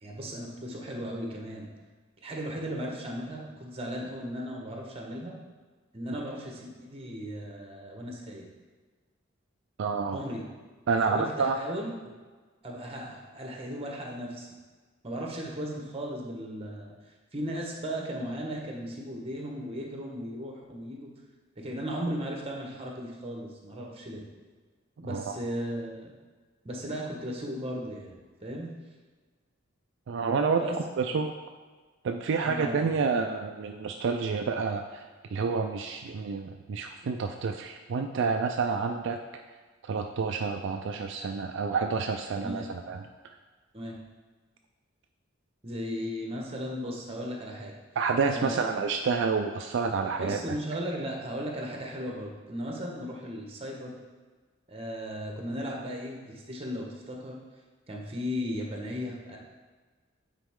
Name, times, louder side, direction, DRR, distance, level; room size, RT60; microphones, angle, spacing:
voice 1, 0.0-1.7 2.2-5.3 5.9-8.5 10.0-10.4 10.9-12.1 12.6-14.5 15.0-16.9 17.3-21.1 21.6-24.2 25.0-26.1 26.6-28.1 28.4-28.7 30.6-30.8 32.4-32.9 42.4-42.7 43.7-44.0 45.6-47.7 48.3-48.8 50.2-54.0 54.7-57.3 57.9-59.4, equal, 30° right, 0 dB, 1.2 m, -36 dB
voice 2, 9.8-10.2 10.9-11.6 25.1-25.4 30.1-30.6 31.0-31.3 32.0-35.0 35.3-39.2 39.8-43.1 48.0-50.4, right 5 dB, 65° right, 4 dB, 0.4 m, -29 dB
9.1 x 4.1 x 3.6 m, 1.4 s
head